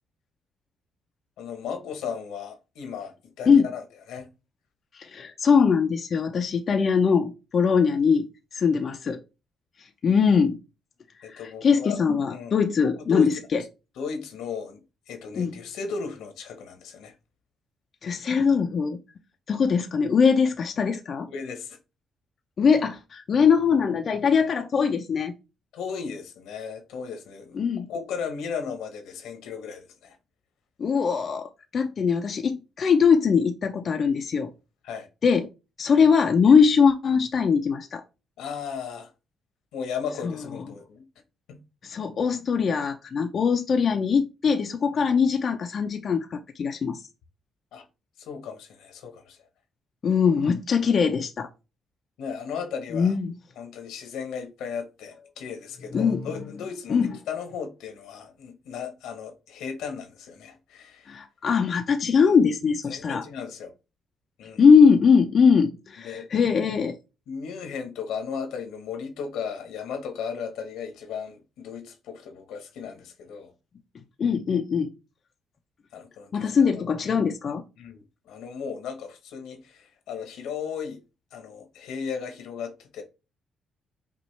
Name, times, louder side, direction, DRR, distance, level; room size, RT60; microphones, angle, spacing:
voice 1, 1.4-3.8 4.1-4.3 11.2-12.0 12.3-12.5 13.0-13.5 14.0-14.8 15.1-17.1 21.3-21.8 25.7-27.6 27.9-30.2 34.8-35.1 38.4-39.1 39.7-41.0 41.5-41.6 44.9-45.0 47.7-47.8 48.2-49.5 52.2-53.2 53.6-61.1 62.9-63.7 64.4-64.6 66.0-66.3 67.3-73.5 75.9-76.9 77.8-81.0 81.3-83.0, left 6 dB, 85° left, 1.1 m, -36 dB
voice 2, 5.0-8.3 8.5-9.2 10.0-10.6 11.3-13.6 15.3-15.5 18.0-19.0 19.5-21.3 22.6-25.3 27.5-27.9 30.8-34.5 35.2-35.5 35.8-38.0 41.8-47.0 50.0-51.5 52.9-53.3 55.9-56.3 56.9-57.2 61.1-63.2 64.6-67.0 74.2-74.9 76.3-77.6, left 6 dB, 50° left, 0.5 m, -21 dB
5.2 x 2.4 x 3.2 m
cardioid pair, 90°, 0 cm